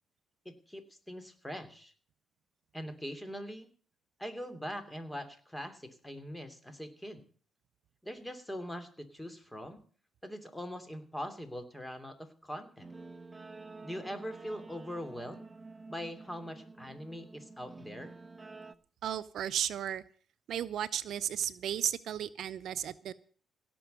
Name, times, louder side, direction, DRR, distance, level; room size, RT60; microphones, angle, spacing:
voice 1, 0.4-1.9 2.7-3.7 4.2-7.2 8.0-9.8 10.2-12.9 13.8-15.5 15.9-18.2, equal, 10° left, 8 dB, 2.9 m, -42 dB
Guitar, 12.8-18.7, right 3 dB, 15° right, 1.2 m, -50 dB
voice 2, 19.0-20.0 20.5-23.1, right 10 dB, 70° right, 15 dB, 0.6 m, -34 dB
17.0 x 6.2 x 9.2 m, 0.44 s
cardioid pair, 90°, 0 cm